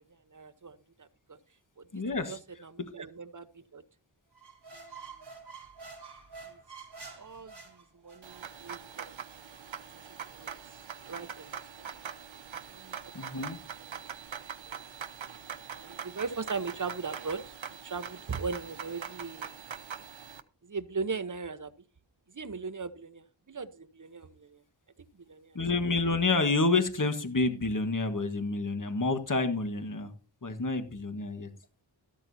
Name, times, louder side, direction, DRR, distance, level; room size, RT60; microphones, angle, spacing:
voice 1, 0.3-1.4 1.8-1.9 2.3-3.5 3.7-3.8 6.5-6.6 7.1-9.0 9.3-9.6 9.9-10.6 11.1-11.5 12.7-13.0 13.8-13.9 14.4-14.8 15.7-17.5 17.8-19.5 20.6-21.7 22.3-24.6 25.2-25.6, right 4 dB, 45° right, 12 dB, 1.0 m, -39 dB
voice 2, 1.9-2.4 2.8-2.9 13.1-13.6 25.5-30.1 30.4-31.5, left 3 dB, 45° left, 8 dB, 1.5 m, -29 dB
sound 1, 4.3-8.4, right 4 dB, 60° right, 3.7 m, -48 dB
sound 2, 8.2-20.4, right 7 dB, 90° right, 0.8 m, -43 dB
13.5 x 12.5 x 2.7 m, 0.36 s
wide cardioid pair, 65°, 44 cm